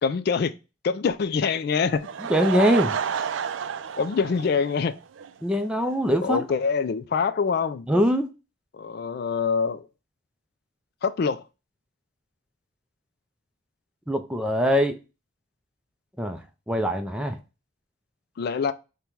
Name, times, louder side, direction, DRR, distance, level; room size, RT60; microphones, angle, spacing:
voice 1, 0.0-0.5 0.8-2.1 4.0-4.9 6.2-7.9 8.7-9.8 11.0-11.4 18.4-18.7, left 5 dB, 55° left, 0.3 m, -25 dB
Laughter / Crowd, 1.8-5.3 5.6-5.7 6.3-6.4 6.5-6.6, right 7 dB, 85° right, 0.4 m, -30 dB
voice 2, 2.3-3.0 5.4-6.4 7.9-8.3 14.1-15.0 16.2-17.4, equal, 5° right, 0.4 m, -23 dB
5.4 x 2.2 x 4.5 m
head